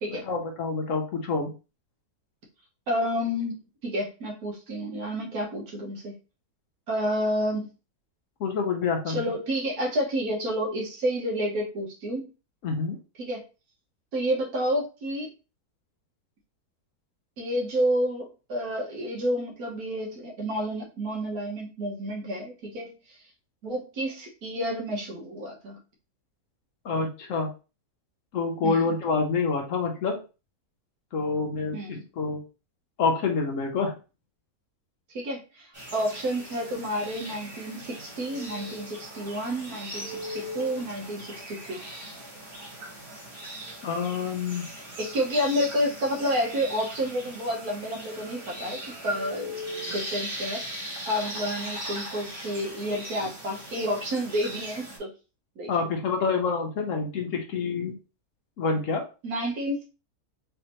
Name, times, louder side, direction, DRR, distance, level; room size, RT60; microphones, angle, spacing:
voice 1, 0.2-1.5 8.4-9.2 12.6-13.0 26.8-27.5 28.3-30.2 31.1-32.4 33.0-33.9 43.8-44.7 55.7-58.0 58.6-59.0, left 4 dB, 65° left, 2 dB, 1.0 m, -27 dB
voice 2, 2.9-6.1 6.9-7.7 9.1-12.3 13.2-13.4 14.1-15.3 17.4-23.2 23.6-25.8 28.6-28.9 31.7-32.0 35.1-41.8 45.0-55.1 55.6-55.7 59.2-59.8, equal, 70° right, 1 dB, 1.5 m, -30 dB
sound 1, 35.7-55.0, right 1 dB, 35° right, 2.0 m, -39 dB
3.4 x 3.3 x 2.9 m, 0.32 s
omnidirectional pair, 1.6 m